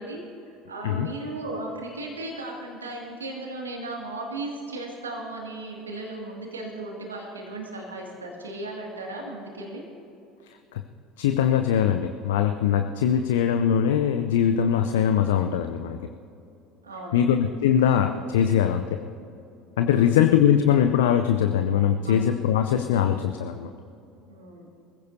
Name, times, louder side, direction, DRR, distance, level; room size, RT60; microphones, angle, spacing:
voice 1, 0.0-9.8 16.8-17.3 19.9-20.2 22.0-22.3 24.3-24.7, right 2 dB, 85° right, -1 dB, 2.2 m, -36 dB
voice 2, 11.2-16.0 17.1-19.0 19.8-23.7, left 9 dB, 75° left, 7 dB, 0.6 m, -22 dB
23.5 x 16.0 x 2.8 m, 2.8 s
figure-of-eight pair, 65°, 0 cm